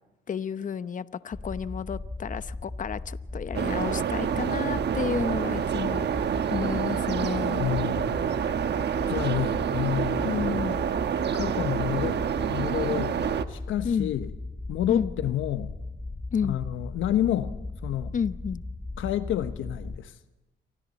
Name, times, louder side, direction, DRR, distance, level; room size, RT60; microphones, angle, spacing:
voice 1, 0.3-7.7 10.2-10.8 13.8-14.1 14.9-15.1 16.3-16.6 18.1-18.6, left 7 dB, 40° left, 0.9 m, -31 dB
sound 1, 1.3-20.0, left 2 dB, 10° left, 0.9 m, -37 dB
sound 2, 3.5-13.4, right 8 dB, 60° right, 1.2 m, -28 dB
voice 2, 7.6-8.2 9.1-10.3 11.3-14.3 14.7-15.7 16.4-17.6 17.8-18.1 19.0-20.2, left 12 dB, 80° left, 1.1 m, -29 dB
28.0 x 24.5 x 4.2 m
cardioid pair, 90°, 20 cm